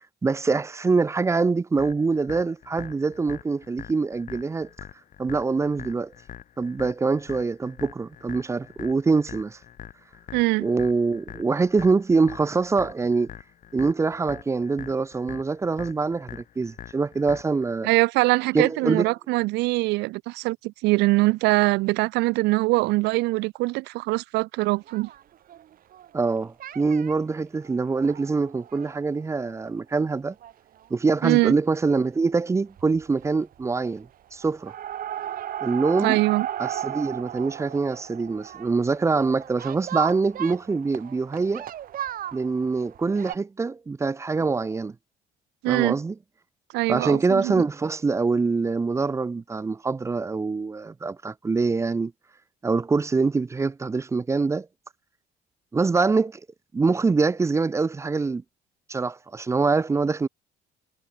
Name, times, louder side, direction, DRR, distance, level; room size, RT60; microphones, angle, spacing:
voice 1, 0.2-4.7 5.2-6.1 6.6-9.6 10.6-13.3 13.7-17.9 18.5-19.1 26.1-30.3 30.9-34.7 35.6-36.2 36.6-41.7 42.3-45.0 45.7-46.1 46.9-52.1 52.6-54.7 55.7-56.4 56.7-58.4 58.9-60.3, right 4 dB, 15° right, 0.4 m, -24 dB
sound 1, 1.8-17.8, left 10 dB, 55° left, 5.0 m, -44 dB
voice 2, 10.3-10.7 17.8-25.1 31.2-31.5 36.0-36.5 45.6-46.0 46.7-47.6, right 22 dB, 90° right, 0.6 m, -23 dB
sound 2, 24.7-26.3 26.6-27.1 27.6-29.7 30.1-30.2 30.4-30.5 30.8-30.9 32.3-32.5 32.8-33.3 33.5-34.1 34.4-43.3, right 11 dB, 60° right, 2.2 m, -36 dB
cardioid pair, 110°, 17 cm